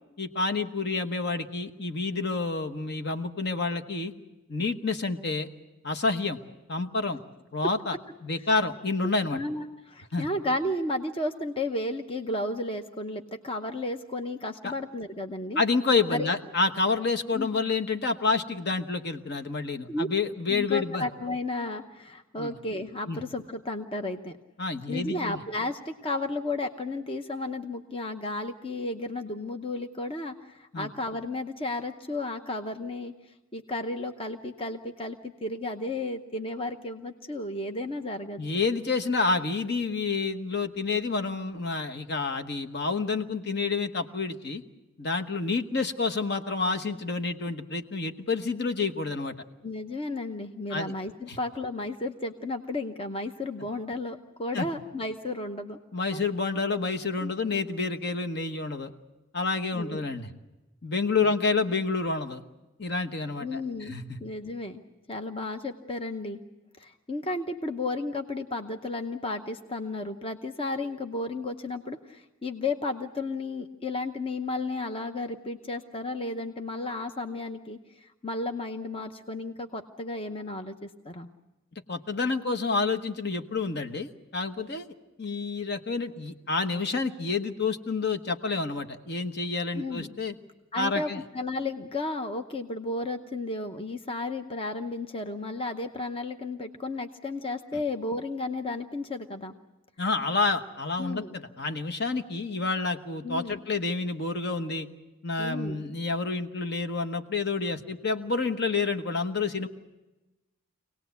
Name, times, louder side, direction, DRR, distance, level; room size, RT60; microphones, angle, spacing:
voice 1, 0.2-4.1 4.5-5.5 5.8-6.4 6.7-7.2 7.5-8.0 8.2-9.4 10.1-10.3 14.6-14.7 15.6-21.1 22.4-22.6 23.1-23.2 24.6-25.4 30.7-30.9 38.4-44.6 45.0-49.3 50.7-50.9 51.3-51.4 54.5-54.7 55.9-58.9 59.3-60.3 60.8-62.4 62.8-64.2 81.9-84.9 85.2-90.3 90.8-91.2 100.0-104.9 105.2-109.7, left 4 dB, 50° left, 8 dB, 1.1 m, -29 dB
voice 2, 9.0-15.6 16.1-16.3 17.3-17.5 19.9-20.1 20.5-24.4 24.9-38.4 49.6-55.8 56.1-56.2 57.2-57.3 59.7-60.0 61.2-61.3 63.4-64.8 65.1-66.4 66.8-81.3 89.7-90.1 90.7-99.5 101.0-101.3 103.2-103.6 105.4-105.8, left 2 dB, 25° left, 5 dB, 0.8 m, -33 dB
25.5 x 18.5 x 8.1 m, 1.1 s
head